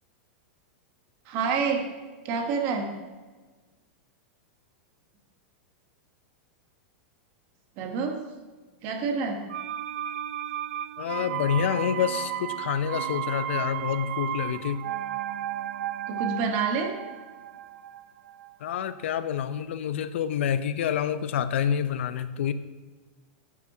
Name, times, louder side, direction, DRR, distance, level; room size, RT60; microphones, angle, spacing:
voice 1, 1.3-1.9 2.2-2.9 7.8-8.3 8.8-9.5 16.1-17.0, right 5 dB, 35° right, 4 dB, 1.0 m, -28 dB
sound 1, 9.5-19.2 19.5-19.6, right 11 dB, 85° right, 0.3 m, -34 dB
voice 2, 11.0-14.8 18.6-22.5, left 8 dB, 75° left, 13 dB, 0.5 m, -28 dB
10.5 x 5.9 x 2.7 m, 1.3 s
supercardioid pair, 165°, 7 cm